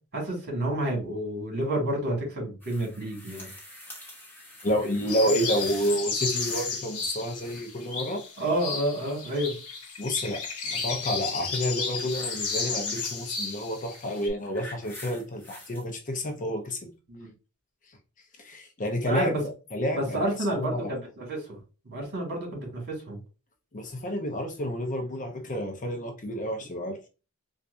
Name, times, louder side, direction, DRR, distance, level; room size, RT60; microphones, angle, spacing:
voice 1, 0.1-3.5 8.4-9.6 17.1-17.3 19.1-19.4 19.9-21.6 21.9-23.2, right 1 dB, 50° right, 1.9 m, -29 dB
sound 1, 2.6-6.9 7.1-7.8 11.5-13.3 14.1-15.9 16.7-16.8, left 1 dB, 10° left, 1.0 m, -46 dB
voice 2, 4.6-8.2 10.0-16.9 18.4-20.2 20.6-20.9 23.7-27.0, equal, 35° left, 0.6 m, -30 dB
sound 2, 5.1-14.3, left 4 dB, 85° left, 0.9 m, -33 dB
4.3 x 2.4 x 2.5 m
head